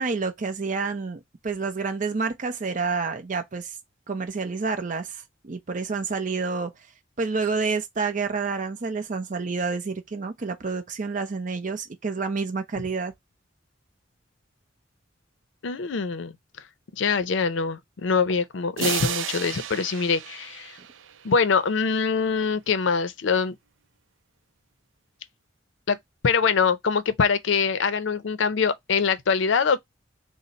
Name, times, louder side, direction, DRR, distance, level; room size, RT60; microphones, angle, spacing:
voice 1, 0.0-3.8 4.1-6.7 7.2-13.1, right 4 dB, 45° right, 0.6 m, -29 dB
voice 2, 15.6-16.4 17.0-20.8 21.2-23.6 25.9-26.0 26.2-29.8, left 5 dB, 75° left, 0.5 m, -24 dB
sound 1, 18.8-21.5, right 9 dB, 90° right, 0.5 m, -32 dB
3.9 x 2.0 x 4.1 m
head